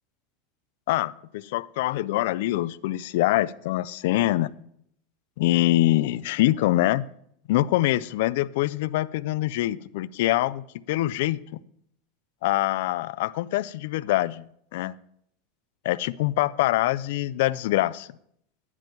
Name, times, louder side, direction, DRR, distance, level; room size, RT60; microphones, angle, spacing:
voice 1, 0.9-4.5 5.4-7.1 7.5-11.6 12.4-15.0 15.8-18.1, left 16 dB, 70° left, 18 dB, 0.4 m, -24 dB
12.0 x 9.8 x 4.5 m, 0.70 s
supercardioid pair, 110°, 0 cm